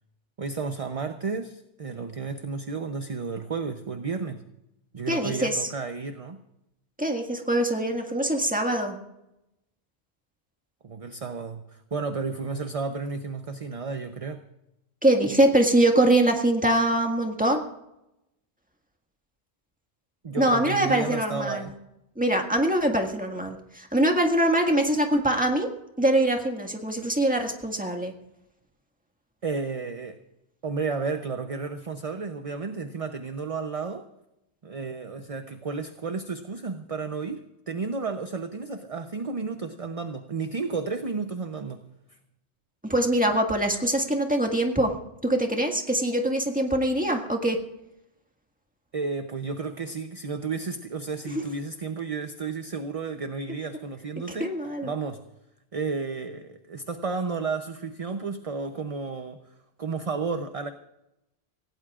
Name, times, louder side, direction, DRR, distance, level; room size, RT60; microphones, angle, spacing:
voice 1, 0.4-4.4 4.9-6.4 10.8-14.4 20.2-21.7 29.4-30.2 30.6-34.0 34.6-41.8 42.1-42.2 48.9-54.5 54.8-55.2 55.7-59.4 59.8-60.7, right 4 dB, 35° right, 7 dB, 0.8 m, -32 dB
voice 2, 5.1-5.7 7.0-9.0 15.0-17.6 20.4-21.7 22.2-25.7 26.0-28.1 42.8-44.9 45.2-47.6 54.4-54.9, right 1 dB, 5° right, 2 dB, 1.8 m, -23 dB
26.0 x 17.0 x 2.5 m, 0.88 s
omnidirectional pair, 1.1 m